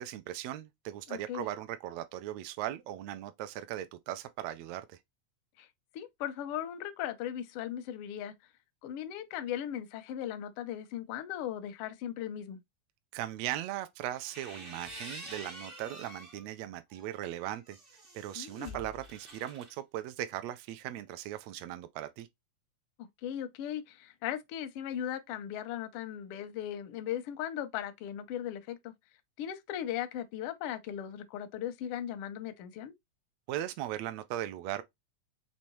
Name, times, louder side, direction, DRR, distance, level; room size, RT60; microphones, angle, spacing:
voice 1, 0.0-5.0 13.1-17.8 18.1-22.3 33.5-34.8, right 13 dB, 75° right, 1.6 m, -38 dB
voice 2, 1.1-1.4 5.6-5.7 5.9-8.3 8.8-12.6 18.3-18.8 23.0-28.9 29.4-32.9, left 10 dB, 80° left, 1.3 m, -38 dB
sound 1, 14.1-16.4 16.9-19.7, right 1 dB, 50° right, 0.6 m, -47 dB
5.4 x 3.2 x 3.0 m
omnidirectional pair, 3.4 m